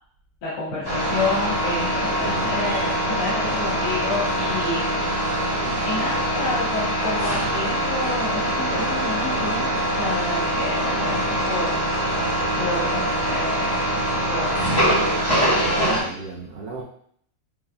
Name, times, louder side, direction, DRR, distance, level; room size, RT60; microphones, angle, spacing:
voice 1, 0.4-4.9 5.8-9.7 10.0-11.7 12.5-13.8 14.3-14.9, left 2 dB, 90° left, -8 dB, 2.2 m, -29 dB
sound 1, 0.8-16.0, right 1 dB, 15° left, 1.3 m, -23 dB
voice 2, 2.1-2.8 12.0-12.5 15.5-16.8, right 3 dB, 70° right, -3 dB, 0.8 m, -36 dB
5.7 x 3.7 x 2.3 m, 0.64 s
omnidirectional pair, 2.3 m